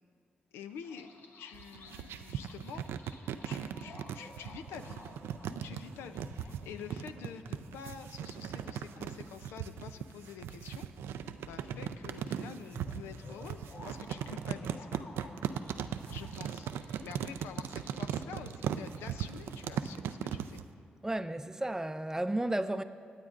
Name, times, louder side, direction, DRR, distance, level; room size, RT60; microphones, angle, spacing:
voice 1, 0.5-2.9 3.4-5.0 5.6-15.1 16.1-20.6, left 7 dB, 90° left, 0.4 m, -48 dB
sound 1, 0.8-19.9, left 2 dB, 65° left, 1.0 m, -54 dB
sound 2, 1.5-20.6, right 9 dB, 85° right, 0.3 m, -38 dB
voice 2, 21.0-22.8, right 1 dB, 15° right, 0.5 m, -33 dB
22.0 x 8.3 x 2.5 m
supercardioid pair, 45°, 4 cm